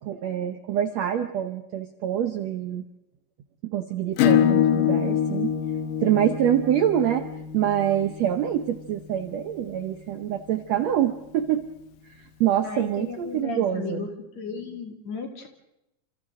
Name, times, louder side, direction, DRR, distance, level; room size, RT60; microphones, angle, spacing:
voice 1, 0.0-2.8 3.6-5.5 6.0-7.3 7.5-11.7 12.0-14.1, right 10 dB, 70° right, 8 dB, 1.7 m, -25 dB
Acoustic guitar / Strum, 4.2-9.4, left 9 dB, 70° left, 2.6 m, -25 dB
voice 2, 12.6-14.1 14.4-15.5, left 5 dB, 50° left, 3 dB, 3.5 m, -35 dB
28.5 x 27.5 x 3.8 m, 0.87 s
omnidirectional pair, 4.2 m